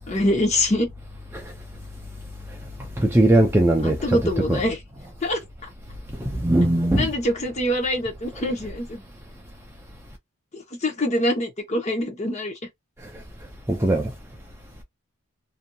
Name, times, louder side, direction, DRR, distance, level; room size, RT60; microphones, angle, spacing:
voice 1, 0.1-0.9 3.8-4.8 5.2-5.4 6.9-9.0 10.5-12.5, left 1 dB, 30° left, 0.8 m, -24 dB
voice 2, 3.0-4.6 6.3-7.1 13.7-14.1, right 1 dB, 10° right, 0.4 m, -19 dB
2.6 x 2.6 x 2.3 m
head